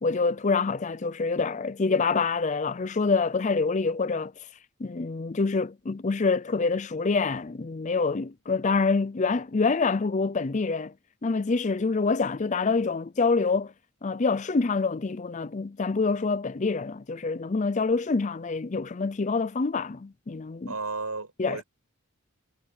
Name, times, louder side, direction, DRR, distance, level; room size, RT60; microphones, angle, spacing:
voice 1, 0.0-4.3 4.8-10.9 11.2-13.7 14.0-20.7 21.4-21.6, left 4 dB, 35° left, 0.5 m, -26 dB
voice 2, 20.7-21.6, right 3 dB, 90° right, 6.2 m, -33 dB
head